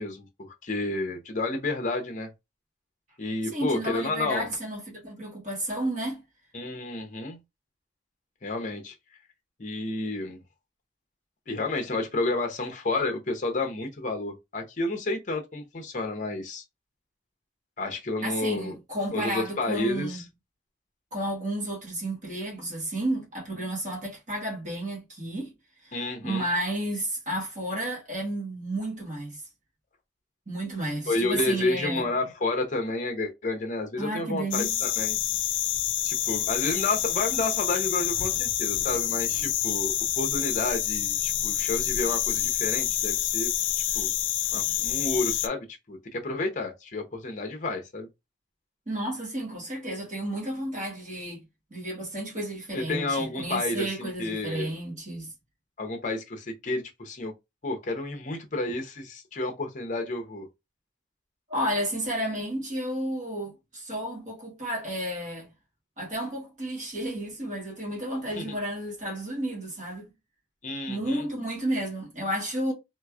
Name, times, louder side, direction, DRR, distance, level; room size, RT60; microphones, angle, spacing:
voice 1, 0.0-2.3 3.2-4.5 6.5-7.4 8.4-8.9 9.6-10.4 11.5-16.6 17.8-18.8 19.1-20.2 25.9-26.4 31.1-35.2 36.0-43.5 43.9-44.1 44.5-48.1 52.7-54.7 55.8-57.3 57.6-60.5 68.3-68.6 70.6-71.2, left 2 dB, 45° left, 0.7 m, -30 dB
voice 2, 3.5-6.2 18.2-20.3 21.1-25.5 25.8-25.9 26.2-29.4 30.5-32.1 34.0-34.8 48.9-51.4 51.7-55.3 61.5-65.5 66.0-70.0 70.9-72.7, right 1 dB, 40° right, 1.5 m, -32 dB
sound 1, 34.5-45.5, left 12 dB, 90° left, 0.3 m, -27 dB
3.3 x 3.0 x 2.3 m
head